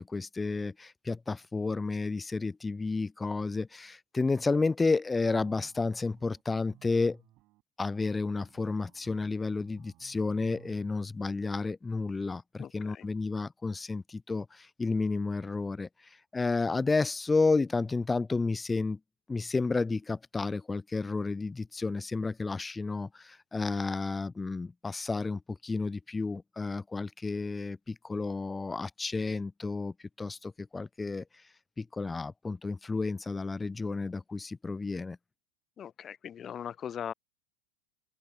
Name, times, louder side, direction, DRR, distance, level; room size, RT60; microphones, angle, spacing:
voice 1, 0.0-7.2 7.8-15.9 16.3-19.0 19.3-31.2 31.8-35.2, left 3 dB, 15° left, 0.4 m, -31 dB
sound 1, 5.2-11.0, right 19 dB, 50° right, 3.8 m, -59 dB
voice 2, 12.6-13.1 35.8-37.1, left 9 dB, 30° left, 0.8 m, -40 dB
open air
hypercardioid pair, 85°, 0 cm